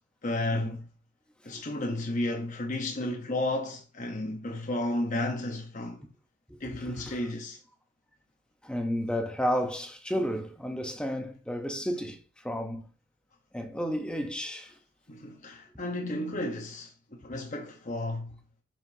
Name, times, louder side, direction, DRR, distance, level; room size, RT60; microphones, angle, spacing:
voice 1, 0.2-0.9 1.4-6.1 6.6-7.6 15.1-18.3, left 1 dB, 40° left, 0.9 m, -33 dB
voice 2, 6.5-7.2 8.6-12.9 13.5-14.8, equal, 5° left, 0.8 m, -32 dB
7.3 x 5.9 x 2.7 m
head